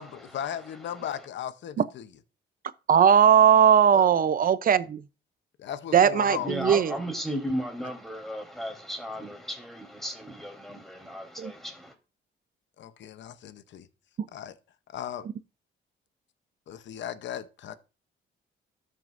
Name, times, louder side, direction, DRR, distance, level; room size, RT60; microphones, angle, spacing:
voice 1, 0.0-2.1 3.9-4.1 5.6-6.6 12.8-13.9 14.3-14.6 14.9-15.3 16.7-17.7, left 9 dB, 65° left, 0.8 m, -37 dB
voice 2, 2.9-5.0 5.9-7.0 11.4-11.5, right 8 dB, 45° right, 0.6 m, -19 dB
voice 3, 6.4-11.9, equal, ahead, 3.5 m, -35 dB
13.5 x 6.3 x 2.6 m
cardioid pair, 90°, 20 cm